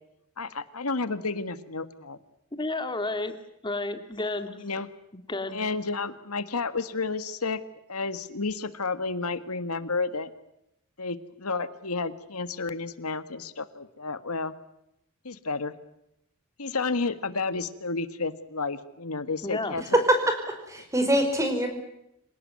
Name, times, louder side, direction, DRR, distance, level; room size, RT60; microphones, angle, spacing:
voice 1, 0.4-2.2 4.6-4.9 5.5-7.6 7.9-10.3 11.0-14.5 15.2-15.7 16.6-20.0, left 4 dB, 90° left, 13 dB, 1.7 m, -31 dB
voice 2, 2.5-3.3 3.6-4.6 5.3-5.6 19.4-19.7, left 2 dB, 20° left, 8 dB, 2.2 m, -31 dB
voice 3, 19.8-21.7, right 1 dB, 15° right, 6 dB, 5.1 m, -24 dB
26.5 x 18.0 x 9.6 m, 0.81 s
head